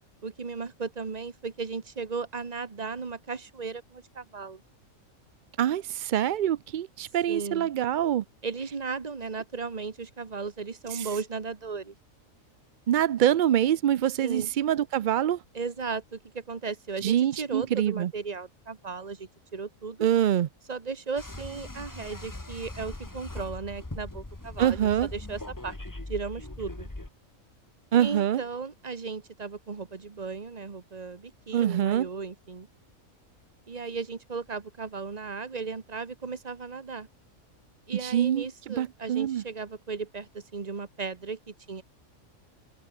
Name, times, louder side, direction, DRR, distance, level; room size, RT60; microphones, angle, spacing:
voice 1, 0.2-4.6 7.3-7.7 8.4-11.9 14.2-14.5 15.5-20.1 20.7-25.8 26.1-26.9 28.0-32.7 33.7-37.1 37.9-41.8, right 4 dB, 30° right, 1.3 m, -36 dB
voice 2, 5.6-8.2 10.9-11.1 12.9-15.4 17.0-18.1 20.0-20.5 24.6-25.1 27.9-28.4 31.5-32.1 38.0-39.4, right 11 dB, 75° right, 0.4 m, -25 dB
sound 1, 21.2-27.1, left 2 dB, 15° left, 1.5 m, -40 dB
omnidirectional pair, 1.4 m